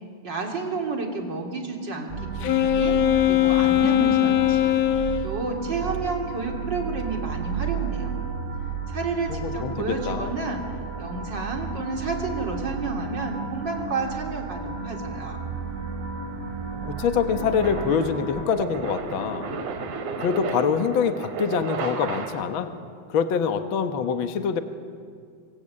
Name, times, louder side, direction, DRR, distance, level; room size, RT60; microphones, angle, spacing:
voice 1, 0.2-4.7 5.2-8.2 8.9-15.4, right 3 dB, 35° right, 1 dB, 3.7 m, -31 dB
sound 1, 2.1-18.4, right 5 dB, 20° right, 3.5 m, -33 dB
Wind instrument woodwind instrument, 2.4-5.3, left 12 dB, 90° left, 2.7 m, -20 dB
voice 2, 9.3-10.3 16.9-19.5 20.2-22.7 23.1-24.6, left 6 dB, 55° left, 8 dB, 1.5 m, -25 dB
sound 2, 15.1-22.7, right 4 dB, 70° right, 3.4 m, -34 dB
26.5 x 24.0 x 8.7 m, 2.2 s
omnidirectional pair, 3.5 m